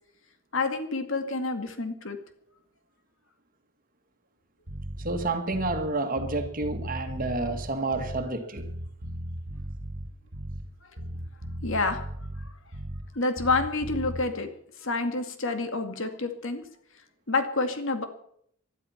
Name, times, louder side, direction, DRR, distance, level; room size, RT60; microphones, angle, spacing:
voice 1, 0.5-2.2 11.6-12.0 13.1-14.5 14.8-16.6 17.3-18.0, left 3 dB, 60° left, 7 dB, 2.2 m, -28 dB
Bass guitar, 4.7-5.9 6.2-8.3 8.6-10.7 11.0-13.1 13.4-14.2, right 1 dB, 55° right, 2.0 m, -37 dB
voice 2, 5.0-8.6, right 2 dB, 40° right, 6 dB, 2.0 m, -29 dB
20.0 x 12.5 x 5.8 m, 0.68 s
head